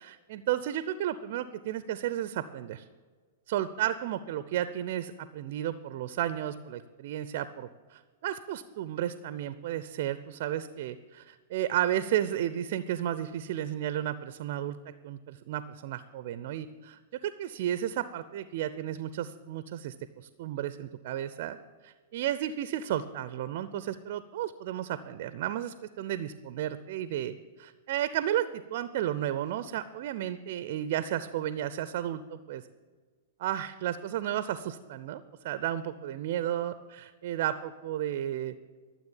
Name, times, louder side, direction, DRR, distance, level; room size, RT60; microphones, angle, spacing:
voice 1, 0.0-2.8 3.5-14.8 15.0-19.9 20.4-21.6 21.8-32.6 33.4-38.5, right 11 dB, 55° right, 13 dB, 0.6 m, -33 dB
13.0 x 7.4 x 8.8 m, 1.5 s
figure-of-eight pair, 105°, 0 cm